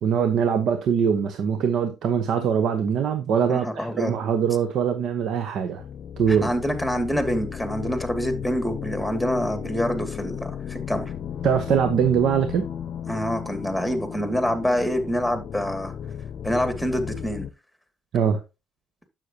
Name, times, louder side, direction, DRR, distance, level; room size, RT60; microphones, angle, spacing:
voice 1, 0.0-5.8 6.2-6.5 11.4-12.6 18.1-18.4, right 7 dB, 65° right, 1.1 m, -22 dB
voice 2, 3.5-4.2 6.3-11.1 13.1-15.9 16.4-17.5, equal, ahead, 2.6 m, -26 dB
sound 1, 5.8-17.5, left 8 dB, 55° left, 0.7 m, -34 dB
9.5 x 7.7 x 3.0 m
supercardioid pair, 70°, 0 cm